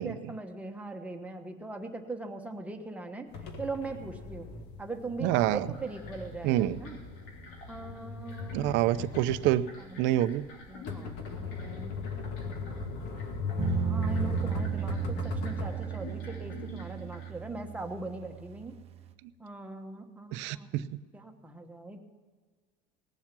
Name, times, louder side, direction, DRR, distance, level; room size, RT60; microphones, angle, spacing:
voice 1, 0.0-3.3 3.6-4.5 4.8-7.0 7.7-8.7 9.8-10.2 10.7-12.0 13.8-18.7 19.4-20.9 21.1-22.0, right 3 dB, 5° right, 3 dB, 1.3 m, -40 dB
sound 1, 3.3-15.7, left 4 dB, 55° left, 1.8 m, -38 dB
voice 2, 5.2-5.7 6.4-6.8 8.5-9.7 10.0-10.4 20.3-21.0, right 14 dB, 60° right, 14 dB, 0.6 m, -27 dB
sound 2, 5.7-17.3, left 3 dB, 80° left, 3.3 m, -51 dB
sound 3, 13.6-19.1, right 8 dB, 30° right, 0.9 m, -35 dB
19.0 x 7.3 x 6.1 m, 1.5 s
cardioid pair, 145°, 21 cm